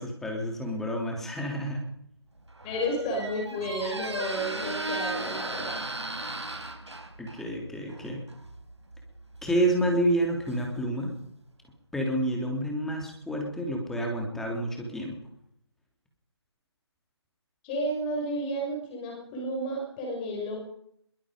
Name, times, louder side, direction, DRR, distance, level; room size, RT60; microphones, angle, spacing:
voice 1, 0.0-1.9 7.2-8.2 9.4-11.1 11.9-15.2, right 1 dB, ahead, 1 dB, 3.0 m, -29 dB
Squeak, 2.4-11.1, right 2 dB, 85° right, 4.6 m, -37 dB
voice 2, 2.6-5.8 17.6-20.6, equal, 20° left, -1 dB, 6.1 m, -32 dB
23.0 x 22.5 x 5.1 m, 0.70 s
figure-of-eight pair, 160°, 14 cm